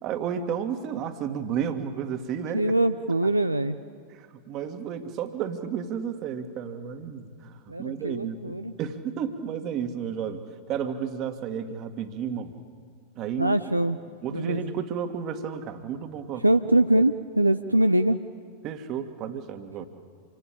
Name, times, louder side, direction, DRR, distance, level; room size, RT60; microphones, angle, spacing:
voice 1, 0.0-2.6 4.1-10.4 10.7-12.5 13.2-13.6 14.2-16.4 18.6-19.8, right 8 dB, 35° right, 7 dB, 1.9 m, -32 dB
voice 2, 2.5-3.8 7.7-8.8 13.4-14.0 14.3-14.7 16.4-18.2, right 1 dB, 85° right, 9 dB, 0.6 m, -23 dB
27.0 x 24.5 x 8.7 m, 2.1 s
figure-of-eight pair, 90°, 0 cm